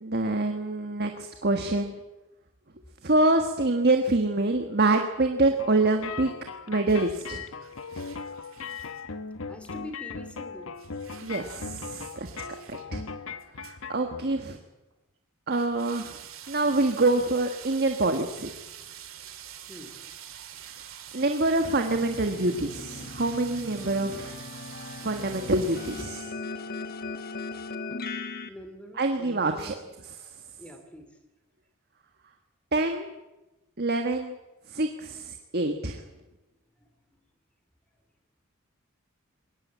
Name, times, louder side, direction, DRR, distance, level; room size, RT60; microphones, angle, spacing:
voice 1, 0.0-1.9 3.0-6.3 6.7-7.4 11.2-12.3 12.9-13.0 13.6-14.6 15.5-16.2 16.5-18.5 21.1-24.3 25.0-26.3 29.0-29.7 32.7-33.1 33.8-34.4 34.7-36.0, right 2 dB, 50° right, 5 dB, 1.5 m, -26 dB
sound 1, 5.6-14.3, left 5 dB, 75° left, 1.1 m, -39 dB
sound 2, 6.9-9.0 10.8-12.8 13.4-13.8 14.0-14.1 14.9-15.0 15.5-26.0, right 10 dB, 70° right, 2.5 m, -46 dB
voice 2, 9.4-10.7 19.7-20.0 28.3-29.9 30.6-31.1 36.8-36.9, equal, 5° left, 7 dB, 2.8 m, -45 dB
sound 3, 21.9-28.5, left 3 dB, 45° left, 1.3 m, -38 dB
21.0 x 18.5 x 8.6 m, 1.0 s
head